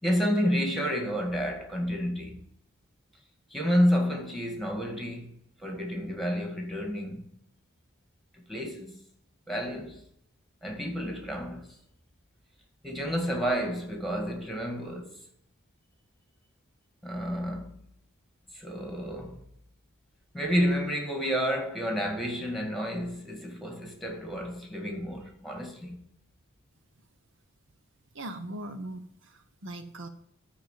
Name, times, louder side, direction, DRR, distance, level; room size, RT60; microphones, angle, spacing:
voice 1, 0.0-2.4 3.5-7.2 8.3-9.0 9.5-10.0 10.6-11.8 12.8-15.2 17.0-17.7 18.5-19.4 20.3-26.0, equal, ahead, 2.2 m, -30 dB
voice 2, 28.1-30.1, right 1 dB, 65° right, 1.0 m, -40 dB
12.5 x 4.4 x 7.5 m
head